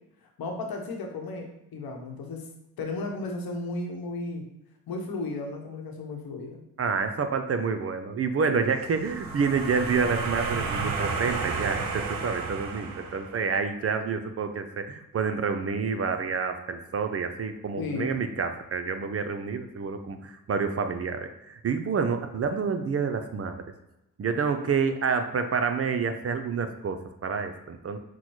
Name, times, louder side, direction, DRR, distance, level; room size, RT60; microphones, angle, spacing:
voice 1, 0.4-2.5 2.8-4.4 4.9-6.6 17.8-18.2, left 2 dB, 70° left, 2 dB, 1.0 m, -34 dB
voice 2, 6.8-23.6 24.2-28.0, right 5 dB, 40° right, 8 dB, 0.5 m, -28 dB
sound 1, 8.9-13.6, right 4 dB, 60° right, 0.8 m, -32 dB
6.0 x 2.2 x 3.1 m, 0.91 s
supercardioid pair, 60°, 38 cm